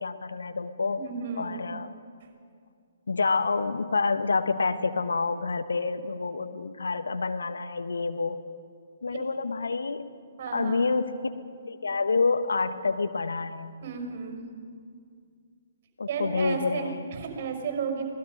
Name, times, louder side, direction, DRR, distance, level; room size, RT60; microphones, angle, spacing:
voice 1, 0.0-1.0 1.4-1.9 3.1-8.4 9.0-10.0 10.5-11.3 11.7-13.8 16.0-17.0, left 4 dB, 70° left, 9 dB, 1.2 m, -28 dB
voice 2, 1.0-1.6 9.1-9.2 10.4-10.9 13.8-14.4 16.1-18.0, right 6 dB, 40° right, 3 dB, 5.6 m, -33 dB
25.5 x 19.0 x 5.3 m, 2.2 s
figure-of-eight pair, 130°, 0 cm